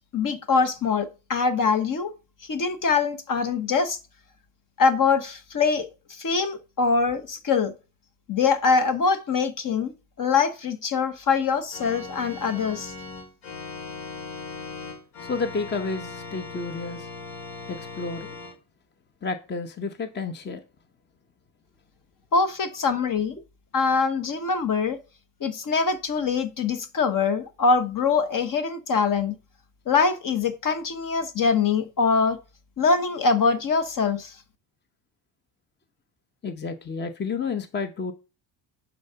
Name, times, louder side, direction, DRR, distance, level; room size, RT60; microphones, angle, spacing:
voice 1, 0.1-2.1 2.4-4.0 4.8-7.7 8.3-12.9 22.3-23.3 23.7-25.0 25.4-29.3 29.9-32.4 32.8-34.3, left 5 dB, 45° left, 1.2 m, -23 dB
Organ, 11.7-18.5, left 4 dB, 70° left, 2.4 m, -39 dB
voice 2, 15.2-17.1 17.7-18.3 19.2-20.6 36.4-38.1, left 4 dB, 25° left, 0.9 m, -31 dB
10.5 x 4.0 x 5.7 m
cardioid pair, 120°, 46 cm